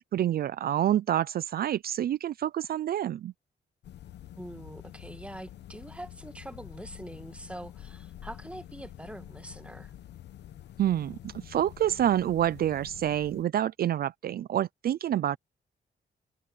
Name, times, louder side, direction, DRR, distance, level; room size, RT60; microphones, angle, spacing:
voice 1, 0.0-3.3 10.8-15.4, right 11 dB, 60° right, 0.4 m, -28 dB
sound 1, 3.8-13.4, left 12 dB, 90° left, 1.0 m, -47 dB
voice 2, 4.4-9.9, right 1 dB, 5° right, 1.8 m, -44 dB
cardioid pair, 115°, 17 cm